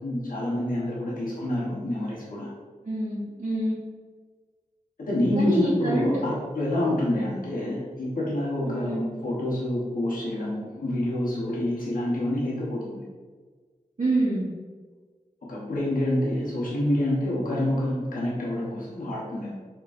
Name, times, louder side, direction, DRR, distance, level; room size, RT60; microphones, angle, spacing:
voice 1, 0.0-2.5 5.0-13.0 15.4-19.5, left 1 dB, 90° left, -6 dB, 1.0 m, -27 dB
voice 2, 2.8-3.7 5.3-6.1 8.6-9.0 14.0-14.5, right 2 dB, 60° right, -10 dB, 1.1 m, -26 dB
4.7 x 3.1 x 2.5 m, 1.5 s
wide cardioid pair, 70°, 14 cm